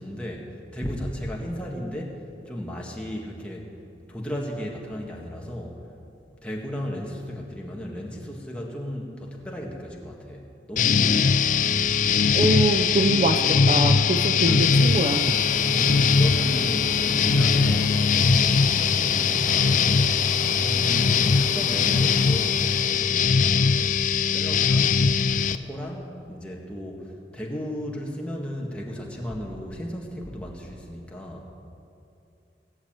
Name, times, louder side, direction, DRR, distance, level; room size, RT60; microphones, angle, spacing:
voice 1, 0.0-3.7 4.1-5.8 6.4-11.3 11.8-11.9 15.6-20.1 20.5-24.0 24.3-25.0 25.5-31.5, equal, 5° left, -2 dB, 1.8 m, -35 dB
sound 1, 10.8-25.6, left 5 dB, 45° left, 0.4 m, -21 dB
voice 2, 12.3-15.4, right 1 dB, 40° right, 5 dB, 0.6 m, -24 dB
sound 2, 14.2-23.0, equal, 25° right, 2.3 m, -37 dB
18.0 x 6.9 x 9.0 m, 2.7 s
head